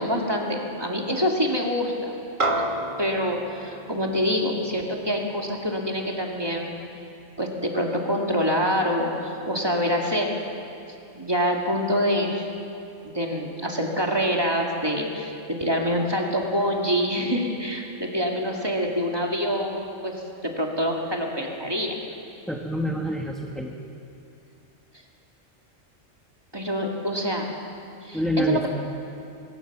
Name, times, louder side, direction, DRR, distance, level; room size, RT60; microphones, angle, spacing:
voice 1, 0.0-2.1 3.0-6.7 7.4-10.3 11.1-12.5 13.0-22.0 26.5-27.5 28.0-28.7, equal, 20° right, 0 dB, 2.3 m, -26 dB
sound 1, 2.4-7.0, right 1 dB, 40° right, 1.7 m, -32 dB
voice 2, 22.5-23.7 28.1-28.7, equal, ahead, 0 dB, 1.2 m, -27 dB
23.0 x 20.5 x 6.0 m, 2.7 s
omnidirectional pair, 1.3 m